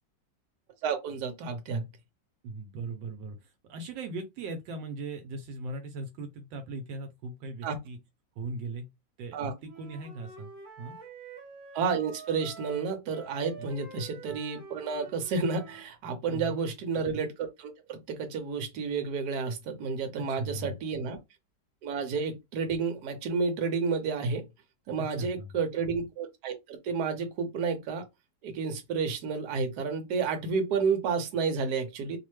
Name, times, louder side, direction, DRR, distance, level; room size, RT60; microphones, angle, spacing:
voice 1, 0.8-1.9 7.6-7.8 9.3-9.5 11.7-21.2 21.8-24.5 24.9-28.1 28.4-32.2, right 5 dB, 65° right, 1.2 m, -31 dB
voice 2, 2.4-8.0 8.4-8.9 9.2-9.4 9.6-10.5 10.8-11.0 13.6-13.8 16.3-16.6 20.2-20.7 25.0-25.5, right 2 dB, 85° right, 1.3 m, -39 dB
Wind instrument woodwind instrument, 9.6-15.9, right 3 dB, 20° right, 0.6 m, -47 dB
3.2 x 2.1 x 3.0 m
omnidirectional pair, 2.0 m